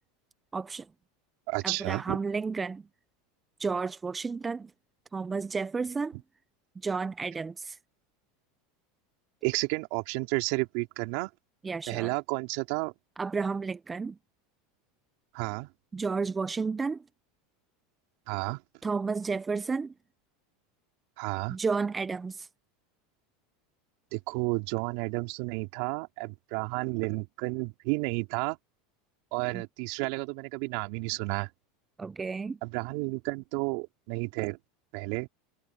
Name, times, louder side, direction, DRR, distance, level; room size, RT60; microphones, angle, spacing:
voice 1, 0.5-0.9 1.6-2.8 3.6-4.7 5.1-6.2 6.8-7.8 11.6-12.1 13.2-14.2 15.9-17.0 18.8-19.9 21.5-22.5 29.5-29.6 32.0-32.6, right 4 dB, 20° right, 0.7 m, -32 dB
voice 2, 1.5-2.2 9.4-11.3 11.9-12.9 15.3-15.7 18.3-18.6 21.2-21.6 24.1-28.6 29.3-31.5 32.6-34.6 34.9-35.3, right 27 dB, 65° right, 3.5 m, -31 dB
hypercardioid pair, 100°, 0 cm